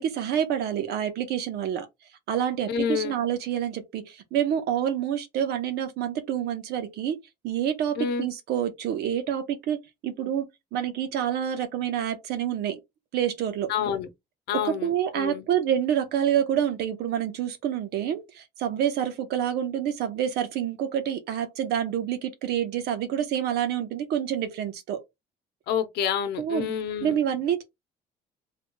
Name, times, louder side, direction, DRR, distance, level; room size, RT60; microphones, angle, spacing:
voice 1, 0.0-1.9 2.3-7.2 7.4-9.8 10.0-10.5 10.7-12.8 13.1-13.7 14.6-25.0 26.4-26.7 27.0-27.6, right 9 dB, 75° right, 0.9 m, -27 dB
voice 2, 2.7-3.1 8.0-8.3 13.7-14.1 14.5-15.4 25.7-27.2, left 7 dB, 75° left, 0.8 m, -28 dB
3.4 x 3.1 x 2.2 m
cardioid pair, 110°, 17 cm